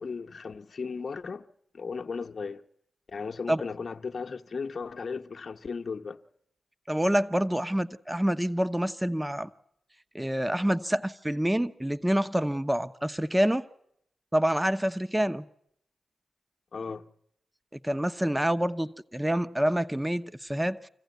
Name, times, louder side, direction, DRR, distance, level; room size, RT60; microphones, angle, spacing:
voice 1, 0.0-1.4 1.7-2.6 3.1-6.2 16.7-17.0, left 5 dB, 60° left, 0.9 m, -36 dB
voice 2, 6.9-9.5 10.1-13.7 14.3-15.4 17.8-20.9, equal, 10° right, 0.8 m, -27 dB
25.5 x 15.0 x 9.3 m
cardioid pair, 55°, 0 cm